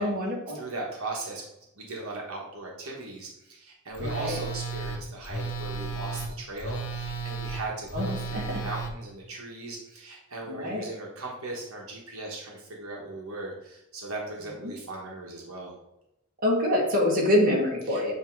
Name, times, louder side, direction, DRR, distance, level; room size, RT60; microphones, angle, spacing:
voice 1, 0.0-0.6 4.0-4.4 7.9-8.6 10.5-10.8 14.6-14.7 16.4-18.1, left 1 dB, 40° right, -2 dB, 1.5 m, -26 dB
voice 2, 0.5-1.4 1.7-15.7 17.8-18.0, right 2 dB, 75° right, -2 dB, 1.3 m, -38 dB
Telephone, 3.9-8.9, right 3 dB, 65° left, 0.8 m, -34 dB
8.1 x 2.9 x 4.6 m, 0.86 s
head